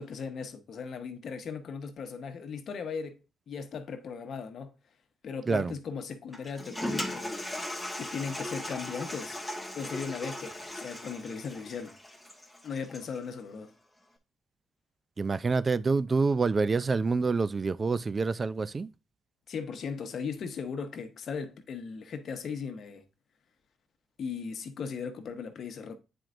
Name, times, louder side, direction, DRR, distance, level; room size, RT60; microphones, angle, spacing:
voice 1, 0.0-4.7 5.2-7.4 8.0-9.4 9.7-11.9 12.6-13.7 19.5-23.0 24.2-26.0, left 5 dB, 60° left, 1.2 m, -37 dB
Toilet flush, 6.3-13.2, left 1 dB, 5° left, 1.2 m, -38 dB
voice 2, 15.2-18.9, right 4 dB, 35° right, 0.4 m, -27 dB
9.0 x 4.5 x 2.5 m
cardioid pair, 90°, 0 cm